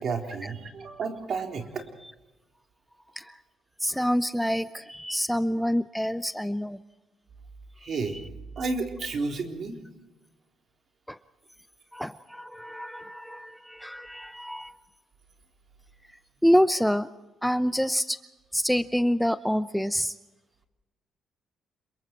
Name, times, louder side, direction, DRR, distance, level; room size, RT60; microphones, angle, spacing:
voice 1, 0.0-1.9 7.8-8.2 8.6-9.8, right 4 dB, 55° right, 4 dB, 3.8 m, -31 dB
voice 2, 3.8-6.8 7.8-8.0 11.1-11.2 11.9-14.7 16.4-17.1 17.4-18.2 18.5-20.1, equal, ahead, 13 dB, 0.7 m, -26 dB
27.5 x 23.0 x 4.6 m, 1.0 s
cardioid pair, 90°, 0 cm